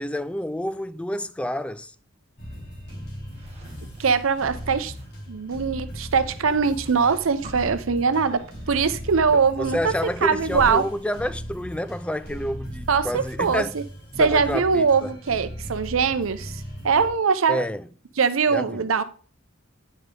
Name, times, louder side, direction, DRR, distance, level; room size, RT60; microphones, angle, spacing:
voice 1, 0.0-1.9 9.3-13.8 14.1-15.1 17.5-17.9 18.5-18.8, left 1 dB, 5° left, 0.3 m, -29 dB
sound 1, 2.4-17.1, equal, 60° left, 3.7 m, -38 dB
sound 2, 3.3-5.1 6.0-8.8 9.1-9.4 9.7-13.3, right 1 dB, 30° right, 1.4 m, -44 dB
voice 2, 4.0-4.9 5.3-10.8 12.9-13.8 14.2-17.7 18.2-19.0, right 5 dB, 85° right, 0.6 m, -22 dB
9.4 x 5.1 x 3.7 m
head